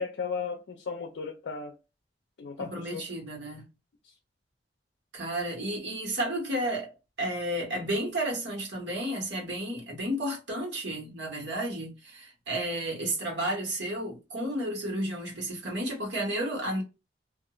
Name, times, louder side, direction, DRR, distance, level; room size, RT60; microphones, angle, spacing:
voice 1, 0.0-1.8 2.4-3.0 4.0-4.1, left 5 dB, 75° left, 0.4 m, -35 dB
voice 2, 2.6-3.6 5.1-16.8, right 1 dB, 80° right, 1.2 m, -32 dB
2.4 x 2.3 x 2.9 m
head